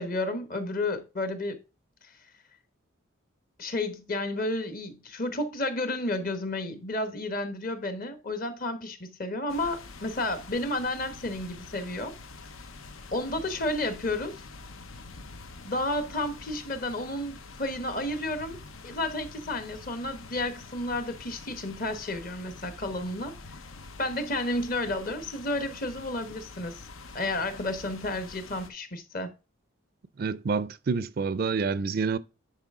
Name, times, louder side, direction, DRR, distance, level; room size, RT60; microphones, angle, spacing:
voice 1, 0.0-1.6 2.0-2.1 3.6-12.1 13.1-14.4 15.6-18.6 18.8-23.3 24.0-26.8 27.1-29.3, left 2 dB, 45° left, 1.1 m, -31 dB
sound 1, 9.5-28.7, left 3 dB, 80° left, 0.8 m, -46 dB
voice 2, 30.2-32.2, right 5 dB, 45° right, 0.4 m, -28 dB
9.9 x 4.2 x 3.6 m
head